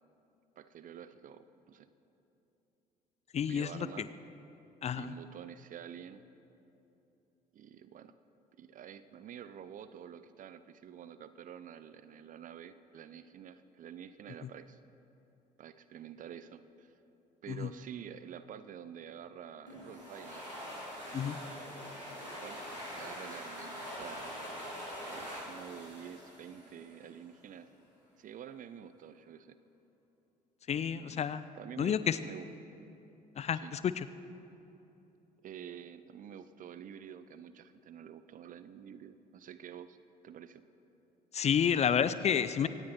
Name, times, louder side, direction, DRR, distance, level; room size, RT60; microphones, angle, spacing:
voice 1, 0.6-1.9 3.5-4.1 5.0-6.2 7.5-8.2 8.6-14.8 15.6-16.9 17.4-20.4 21.1-21.7 22.2-24.4 24.7-27.7 28.2-29.5 30.7-32.5 33.5-33.7 35.4-40.0 40.2-40.6, right 9 dB, 40° right, 13 dB, 0.7 m, -49 dB
voice 2, 3.3-4.1 4.8-5.1 17.5-17.7 21.1-21.4 30.7-31.5 31.8-32.2 33.4-34.1 41.3-42.7, left 8 dB, 30° left, 14 dB, 0.5 m, -30 dB
sound 1, 19.7-27.1, equal, 90° right, 3.5 m, -44 dB
24.5 x 18.0 x 3.1 m, 3.0 s
figure-of-eight pair, 50°, 21 cm